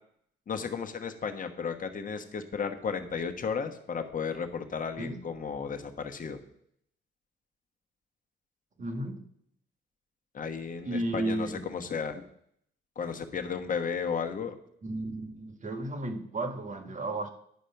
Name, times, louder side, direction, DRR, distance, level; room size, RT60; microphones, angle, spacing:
voice 1, 0.5-6.4 10.3-12.2 13.0-14.5, left 6 dB, 40° left, 6 dB, 1.2 m, -34 dB
voice 2, 8.8-9.2 10.8-11.7 14.8-17.3, right 2 dB, 40° right, 6 dB, 1.5 m, -33 dB
10.5 x 5.0 x 5.8 m, 0.69 s
cardioid pair, 90°, 20 cm